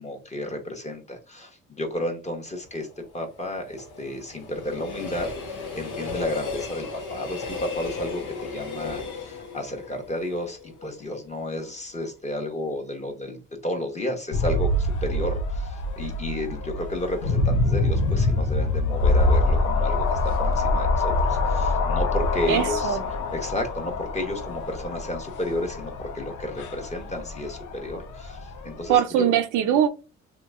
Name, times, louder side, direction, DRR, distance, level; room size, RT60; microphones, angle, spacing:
voice 1, 0.0-2.9 3.1-13.4 13.6-23.0 23.3-29.2, left 1 dB, 25° left, 1.0 m, -32 dB
Train, 2.6-11.6 12.0-12.1, left 4 dB, 90° left, 1.0 m, -36 dB
sound 1, 14.3-29.0, left 2 dB, 70° left, 0.6 m, -25 dB
voice 2, 22.5-23.0 28.9-29.9, right 10 dB, 90° right, 0.5 m, -21 dB
2.9 x 2.2 x 3.5 m
cardioid pair, 90°, 30 cm